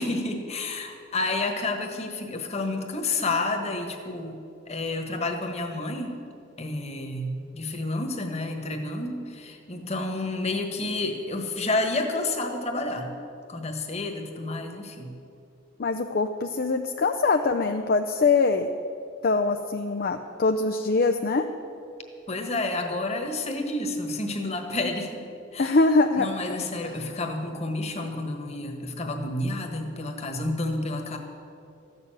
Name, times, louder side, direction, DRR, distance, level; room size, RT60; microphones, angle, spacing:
voice 1, 0.0-4.4 4.7-6.1 6.6-13.1 13.5-15.1 22.3-25.2 25.5-25.8 26.2-31.2, left 2 dB, 35° left, 4 dB, 1.4 m, -30 dB
voice 2, 15.8-18.7 19.2-21.5 25.6-26.3 26.8-27.0, left 3 dB, 50° left, 6 dB, 0.5 m, -23 dB
14.0 x 6.8 x 9.0 m, 2.6 s
head